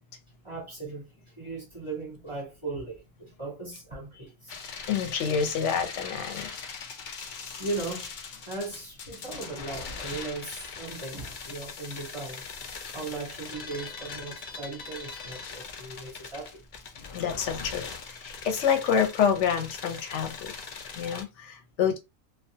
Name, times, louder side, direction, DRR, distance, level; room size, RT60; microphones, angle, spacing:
voice 1, 0.4-1.1 1.4-4.6 7.6-8.1 8.4-12.4 12.9-16.5, right 3 dB, 30° right, 0.6 m, -37 dB
sound 1, 4.5-21.2, left 5 dB, 85° left, 0.4 m, -41 dB
voice 2, 4.9-6.5 17.1-20.5 21.0-22.0, left 7 dB, 65° left, 0.9 m, -27 dB
2.3 x 2.3 x 2.6 m
omnidirectional pair, 1.4 m